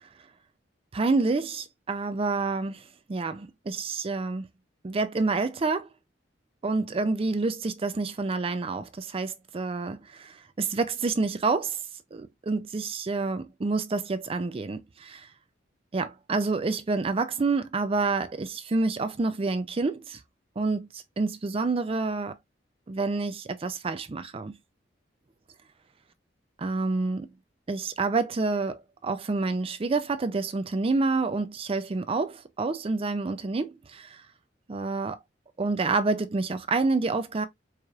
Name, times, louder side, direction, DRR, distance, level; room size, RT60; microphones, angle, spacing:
voice 1, 0.9-4.5 4.8-5.9 6.6-11.8 12.1-15.3 15.9-20.2 20.6-22.4 22.9-24.6 26.6-27.3 27.7-34.2 34.7-35.2 35.6-37.5, right 3 dB, 30° right, 0.4 m, -28 dB
4.7 x 3.0 x 2.3 m
head